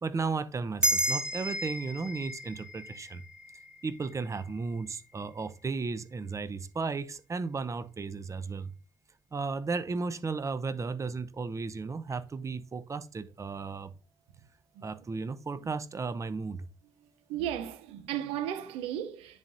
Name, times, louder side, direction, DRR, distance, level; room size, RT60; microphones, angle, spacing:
voice 1, 0.0-3.2 3.8-8.7 9.3-13.9 14.8-16.7, right 4 dB, 30° right, 0.7 m, -34 dB
sound 1, 0.8-5.5, right 1 dB, 10° right, 1.5 m, -33 dB
voice 2, 17.0-19.4, right 10 dB, 75° right, 0.7 m, -35 dB
10.5 x 4.0 x 2.6 m
hypercardioid pair, 50°, 10 cm